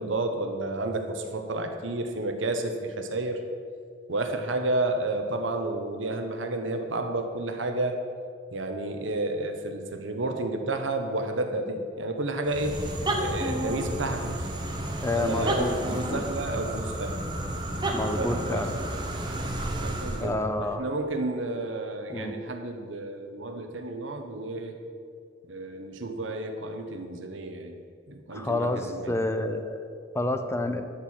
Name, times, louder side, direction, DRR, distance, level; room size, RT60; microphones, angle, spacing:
voice 1, 0.0-3.4 4.1-8.0 8.5-12.7 13.2-14.5 15.1-17.2 18.2-18.7 19.8-24.8 25.5-29.1, right 2 dB, 75° right, 5 dB, 1.1 m, -31 dB
sound 1, 12.4-20.3, right 1 dB, 25° right, 1.2 m, -31 dB
voice 2, 15.0-16.2 17.9-18.7 20.2-20.8 22.1-22.4 28.3-29.8 30.1-30.8, left 2 dB, 15° left, 8 dB, 0.7 m, -29 dB
12.5 x 4.8 x 7.4 m, 2.3 s
head